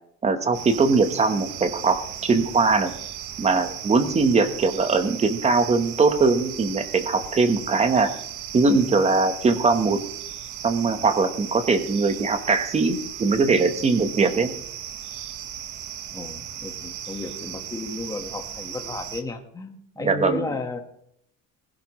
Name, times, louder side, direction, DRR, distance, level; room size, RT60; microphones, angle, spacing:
voice 1, 0.2-2.9 3.4-8.1 8.5-10.0 10.6-14.5 20.0-20.4, right 4 dB, 20° right, 9 dB, 1.1 m, -21 dB
sound 1, 0.5-19.2, right 10 dB, 65° right, 1.3 m, -37 dB
voice 2, 16.1-20.8, left 3 dB, 10° left, 3 dB, 1.4 m, -33 dB
20.0 x 11.0 x 3.1 m, 0.70 s
cardioid pair, 165°, 32 cm